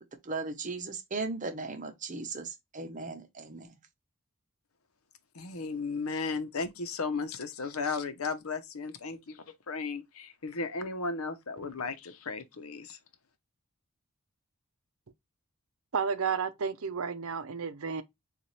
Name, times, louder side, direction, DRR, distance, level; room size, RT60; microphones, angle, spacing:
voice 1, 0.2-3.7, right 3 dB, 35° right, 0.8 m, -37 dB
voice 2, 5.3-13.0, left 4 dB, 75° left, 0.8 m, -35 dB
voice 3, 15.9-18.0, right 6 dB, 70° right, 0.6 m, -32 dB
6.8 x 2.5 x 3.1 m
head